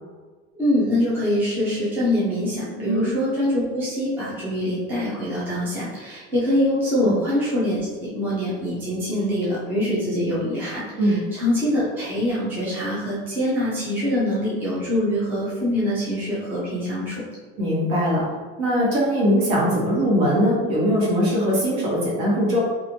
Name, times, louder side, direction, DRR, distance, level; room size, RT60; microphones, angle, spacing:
voice 1, 0.6-17.2, left 1 dB, 5° right, -9 dB, 0.5 m, -24 dB
voice 2, 17.6-18.3 18.6-22.6, equal, 65° right, -5 dB, 1.3 m, -21 dB
2.9 x 2.4 x 2.7 m, 1.4 s
cardioid pair, 180°, 32 cm